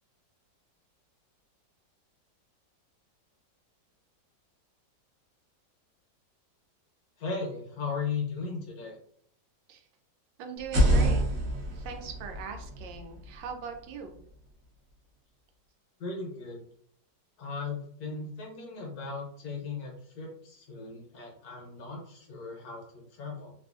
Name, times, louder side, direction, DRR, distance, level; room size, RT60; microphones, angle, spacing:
voice 1, 7.2-9.0 16.0-16.6 17.4-23.5, left 4 dB, 65° left, -1 dB, 1.1 m, -37 dB
voice 2, 10.4-11.2 11.7-14.1, right 6 dB, 85° right, 5 dB, 1.3 m, -40 dB
sound 1, 10.6-14.4, equal, 55° right, 1.0 m, -28 dB
3.2 x 2.4 x 2.4 m, 0.64 s
omnidirectional pair, 2.0 m